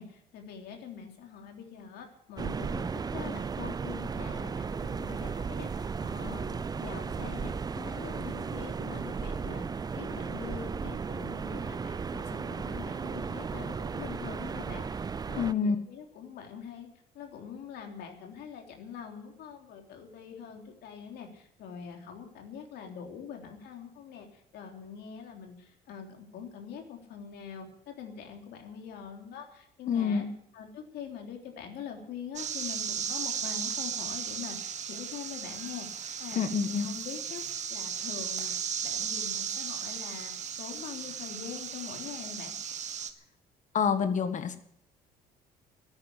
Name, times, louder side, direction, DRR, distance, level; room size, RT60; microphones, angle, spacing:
voice 1, 0.0-16.9 17.1-30.2 30.5-37.4 37.7-40.3 40.6-42.6, left 7 dB, 75° left, 3 dB, 3.4 m, -44 dB
sound 1, 2.4-15.5, right 5 dB, 25° right, 0.5 m, -35 dB
voice 2, 15.3-15.8 29.9-30.3 36.3-36.9 43.7-44.6, left 6 dB, 45° left, 10 dB, 1.7 m, -27 dB
sound 2, 32.3-43.1, right 7 dB, 45° right, 1.3 m, -36 dB
13.5 x 9.7 x 10.0 m, 0.72 s
cardioid pair, 110°, 17 cm